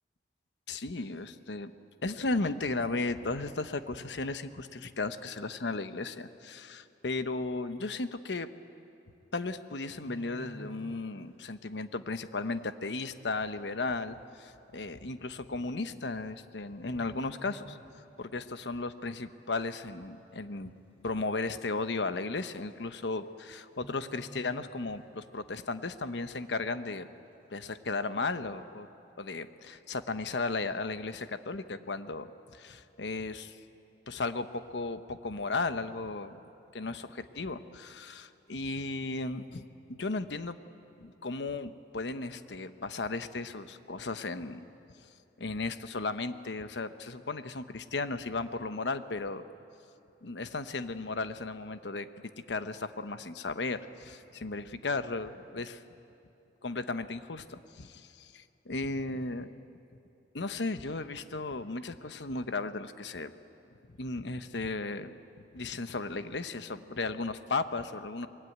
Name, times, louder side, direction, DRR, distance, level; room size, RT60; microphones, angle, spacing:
voice 1, 0.7-1.7 2.0-8.5 9.3-17.8 18.2-20.7 21.0-27.1 27.5-28.9 29.2-32.3 32.5-33.6 34.1-36.4 36.7-40.6 41.0-44.7 45.4-49.4 50.2-52.1 52.5-55.8 56.6-59.5 60.3-63.3 64.0-65.2 65.5-68.3, left 3 dB, 85° left, 10 dB, 1.0 m, -35 dB
sound 1, 9.9-11.5 11.7-12.0 12.6-12.7 13.6-13.7 13.9-14.0 14.8-15.0 16.1-16.5 16.8-18.4 18.7-18.9 19.4-20.0 20.3-20.4 20.6-20.7 21.1-21.2 22.2-22.3 22.6-22.9 23.1-23.3 23.7-25.3 25.7-25.8, right 1 dB, 35° left, 7.2 m, -51 dB
24.5 x 21.5 x 9.4 m, 2.7 s
head